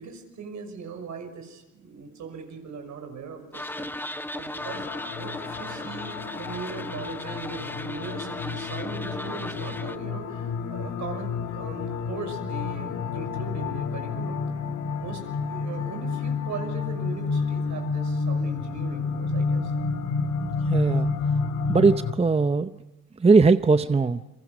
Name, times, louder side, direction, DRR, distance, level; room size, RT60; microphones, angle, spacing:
voice 1, 0.0-4.9 5.1-14.4 14.9-15.2 15.5-19.7, right 5 dB, 70° right, 5 dB, 6.3 m, -39 dB
sound 1, 3.5-10.0, left 1 dB, 5° left, 1.2 m, -36 dB
sound 2, 4.6-22.1, left 4 dB, 75° left, 2.7 m, -30 dB
voice 2, 20.7-21.1 21.7-22.8 23.2-24.2, right 4 dB, 20° right, 11 dB, 0.8 m, -20 dB
30.0 x 23.0 x 6.3 m, 1.0 s
cardioid pair, 90°, 30 cm